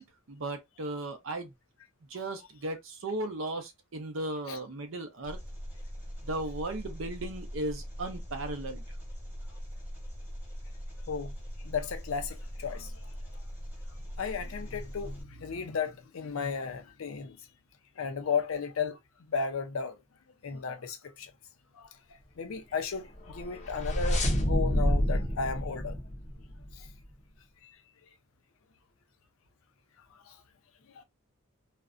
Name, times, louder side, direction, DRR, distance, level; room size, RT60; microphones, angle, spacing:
voice 1, 0.0-1.5 2.1-5.4 6.2-8.8, right 2 dB, 65° right, 0.6 m, -36 dB
Engine, 5.2-15.2, equal, 10° right, 0.9 m, -41 dB
voice 2, 11.6-13.1 14.2-17.4 18.0-19.0 19.3-20.0 20.4-21.3 21.7-21.9 22.4-26.0 26.7-26.9 27.6-27.7 30.3-30.4 30.9-31.0, left 5 dB, 80° left, 0.5 m, -34 dB
sound 1, 23.2-26.9, equal, 35° left, 0.6 m, -28 dB
2.4 x 2.1 x 2.4 m
head